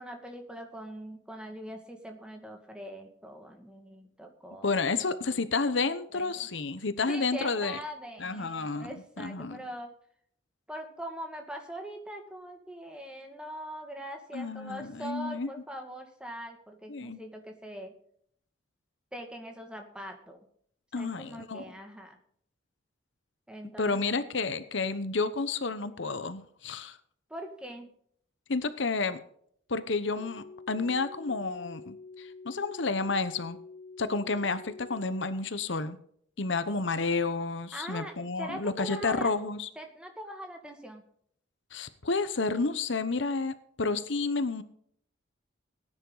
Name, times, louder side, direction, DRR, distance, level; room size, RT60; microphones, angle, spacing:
voice 1, 0.0-5.2 6.1-6.5 7.1-9.9 10.7-17.9 19.1-20.5 21.0-22.2 23.5-24.0 27.3-27.9 37.7-39.3 39.8-41.0, equal, 5° right, 3 dB, 2.0 m, -42 dB
voice 2, 4.6-7.8 8.2-9.6 14.3-15.5 16.9-17.2 20.9-21.6 23.8-27.0 28.5-29.2 29.7-33.6 34.0-36.0 36.4-39.7 41.7-44.6, left 3 dB, 70° left, 12 dB, 1.0 m, -30 dB
sound 1, 30.2-35.3, left 3 dB, 50° left, 1.2 m, -47 dB
18.5 x 10.0 x 4.0 m, 0.64 s
head